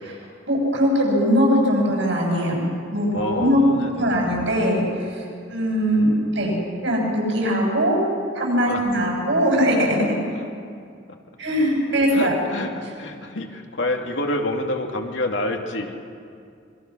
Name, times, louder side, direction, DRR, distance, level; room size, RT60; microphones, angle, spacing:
voice 1, 0.5-2.6 2.9-3.6 3.9-5.2 5.5-6.5 6.8-8.0 8.3-10.1 11.4-12.3, equal, 75° right, -1 dB, 7.7 m, -21 dB
voice 2, 3.1-4.3 8.6-8.8 12.1-16.0, left 1 dB, 80° left, 2 dB, 2.6 m, -27 dB
26.0 x 23.0 x 6.3 m, 2.3 s
head